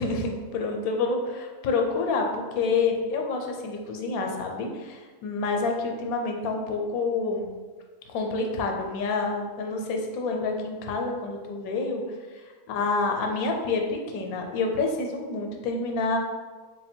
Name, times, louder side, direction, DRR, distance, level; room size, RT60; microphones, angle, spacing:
voice 1, 0.0-7.5 8.1-12.0 12.7-16.2, left 3 dB, 90° left, 3 dB, 1.0 m, -28 dB
3.4 x 2.1 x 4.2 m, 1.4 s
omnidirectional pair, 1.5 m